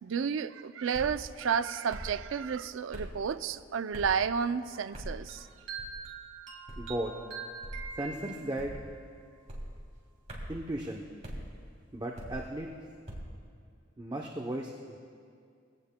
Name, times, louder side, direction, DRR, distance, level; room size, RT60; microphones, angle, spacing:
voice 1, 0.0-5.5, right 6 dB, 85° right, 0.4 m, -31 dB
sound 1, 0.9-1.2 1.9-2.2 2.9-3.2 3.9-4.2 4.9-5.2 5.8-6.1 6.7-6.9 7.6-7.9 8.6-8.9 9.5-9.7 10.3-10.6 11.2-11.4 12.1-12.5 13.1-13.3, equal, 35° right, 2.8 m, -41 dB
sound 2, 5.3-8.8, right 5 dB, 65° right, 1.7 m, -43 dB
voice 2, 6.8-7.1 8.0-8.8 10.5-11.1 11.9-12.7 14.0-15.0, right 1 dB, 20° right, 0.7 m, -35 dB
21.5 x 17.0 x 2.2 m
head